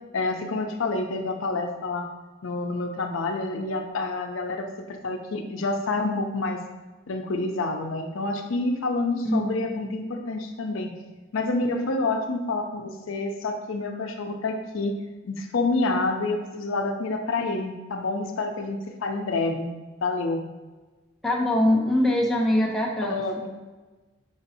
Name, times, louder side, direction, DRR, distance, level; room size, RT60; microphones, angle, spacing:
voice 1, 0.1-2.1 2.4-6.6 7.1-10.9 11.3-15.0 15.2-19.7 20.0-20.4 23.1-23.4, left 3 dB, 75° left, 4 dB, 0.5 m, -28 dB
voice 2, 21.2-23.5, left 1 dB, ahead, -2 dB, 0.5 m, -23 dB
4.9 x 2.6 x 4.0 m, 1.2 s
head